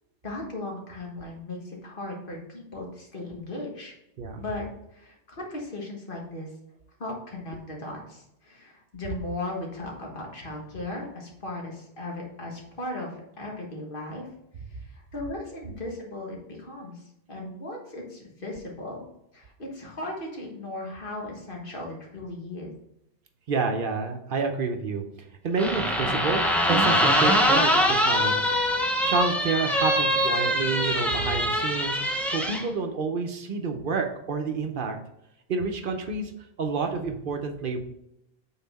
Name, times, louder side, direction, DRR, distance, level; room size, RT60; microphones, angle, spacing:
voice 1, 0.2-3.9 4.4-4.6 4.9-6.5 7.0-14.3 14.7-19.0 19.3-22.7, left 2 dB, 60° left, -1 dB, 1.6 m, -37 dB
voice 2, 23.5-25.0 25.4-28.5 29.0-35.0 35.5-36.3 36.6-37.8, right 4 dB, 60° right, 5 dB, 0.8 m, -29 dB
sound 1, 25.6-32.6, equal, ahead, 0.6 m, -23 dB
5.7 x 4.0 x 4.1 m, 0.81 s
omnidirectional pair, 1.0 m